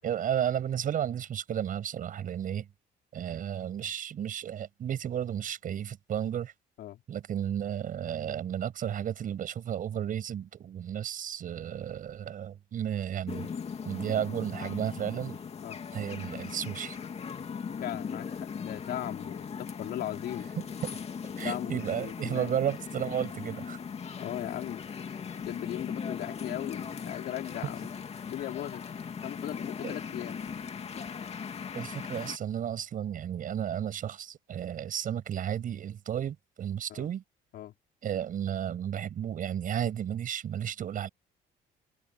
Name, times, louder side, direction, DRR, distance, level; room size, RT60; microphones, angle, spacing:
voice 1, 0.0-2.7 3.1-6.5 7.1-13.5 13.9-15.4 15.9-17.0 20.6-20.7 20.9-21.0 21.4-23.8 29.8-30.0 31.7-37.2 38.0-41.1, right 9 dB, 55° right, 7.2 m, -33 dB
sound 1, 13.3-32.4, left 6 dB, 40° left, 2.4 m, -39 dB
voice 2, 17.8-20.5 21.4-22.5 24.2-24.8 25.4-27.9 28.2-28.8 29.2-30.4 36.9-37.1 37.5-37.7, left 13 dB, 70° left, 4.2 m, -38 dB
cardioid pair, 110°, 17 cm